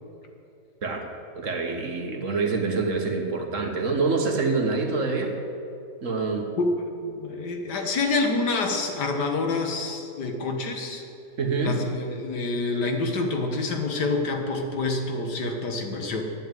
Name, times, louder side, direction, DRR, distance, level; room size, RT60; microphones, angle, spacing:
voice 1, 1.4-5.3 6.0-6.5 11.4-11.8, right 4 dB, 50° right, 3 dB, 1.7 m, -26 dB
voice 2, 6.6-11.0 11.6-16.2, left 3 dB, 80° left, 3 dB, 2.1 m, -27 dB
11.5 x 9.1 x 9.2 m, 2.7 s
omnidirectional pair, 1.8 m